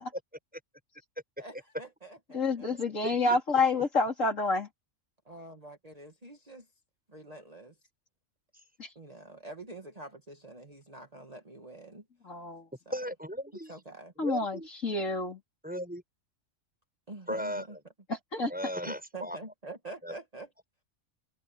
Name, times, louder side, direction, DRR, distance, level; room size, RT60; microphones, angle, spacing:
voice 1, 1.4-2.5 5.3-6.7 7.1-7.8 9.0-12.0 13.7-14.1 17.1-17.8 18.8-20.5, right 2 dB, 30° right, 1.8 m, -46 dB
voice 2, 2.3-4.7 8.8-8.9 12.2-12.7 14.2-15.4 18.1-18.5, left 3 dB, 80° left, 4.4 m, -28 dB
voice 3, 12.9-13.7 14.2-14.7 15.6-16.0 17.3-17.7 18.5-19.4 20.0-20.1, equal, 5° right, 7.4 m, -36 dB
omnidirectional pair, 1.3 m